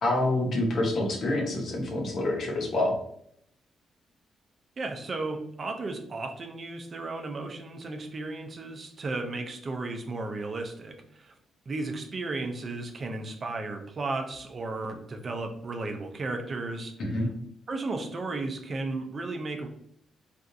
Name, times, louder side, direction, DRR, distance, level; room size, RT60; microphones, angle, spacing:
voice 1, 0.0-2.9 17.0-17.3, left 1 dB, 65° left, 1 dB, 0.9 m, -27 dB
voice 2, 4.8-11.3 11.7-16.9 17.7-19.7, right 3 dB, 50° right, 4 dB, 0.5 m, -34 dB
3.4 x 2.4 x 2.6 m, 0.70 s
supercardioid pair, 55°, 0 cm